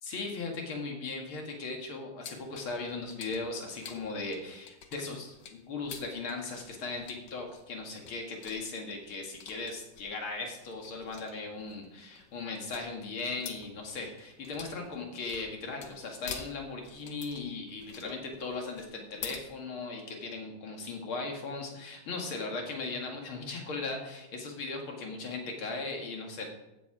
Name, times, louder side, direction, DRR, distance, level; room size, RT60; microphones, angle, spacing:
voice 1, 0.0-26.5, left 3 dB, 80° left, 2 dB, 2.7 m, -38 dB
sound 1, 2.2-19.4, left 7 dB, 60° left, 1.7 m, -48 dB
15.0 x 7.6 x 4.9 m, 0.97 s
omnidirectional pair, 2.3 m